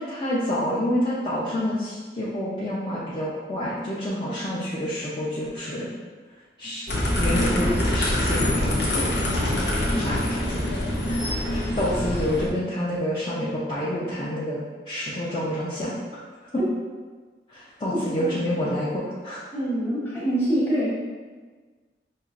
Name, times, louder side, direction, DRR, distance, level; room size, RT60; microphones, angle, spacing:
voice 1, 0.0-5.9 6.6-6.8 7.2-9.3 9.9-10.6 11.1-15.9 16.5-16.6 17.5-19.5, equal, 30° left, -9 dB, 0.5 m, -28 dB
sound 1, 6.9-12.5, left 1 dB, 75° left, 0.9 m, -24 dB
voice 2, 9.9-10.6 17.9-18.3 19.5-20.9, right 1 dB, 15° left, -7 dB, 1.0 m, -26 dB
5.5 x 2.9 x 2.5 m, 1.4 s
head